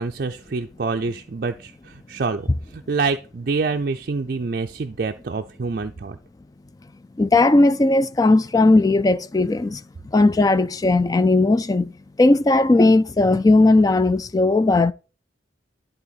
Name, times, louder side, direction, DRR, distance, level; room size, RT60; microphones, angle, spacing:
voice 1, 0.0-6.2, right 4 dB, 50° right, 0.4 m, -26 dB
voice 2, 7.2-9.8 10.1-11.9 12.2-14.9, left 2 dB, 20° left, 0.3 m, -17 dB
11.0 x 3.9 x 4.0 m
head